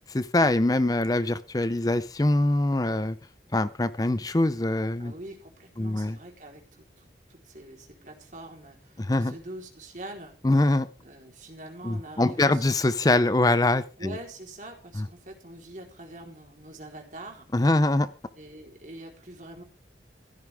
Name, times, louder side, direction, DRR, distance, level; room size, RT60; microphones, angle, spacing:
voice 1, 0.1-3.2 3.5-5.1 5.8-6.2 9.0-9.3 10.4-10.9 11.8-14.2 15.0-15.1 17.5-18.1, left 2 dB, 20° left, 14 dB, 0.5 m, -23 dB
voice 2, 5.0-10.3 11.0-12.6 14.0-17.5 18.4-19.6, right 1 dB, 45° right, 2 dB, 4.1 m, -44 dB
15.5 x 13.0 x 3.6 m, 0.36 s
head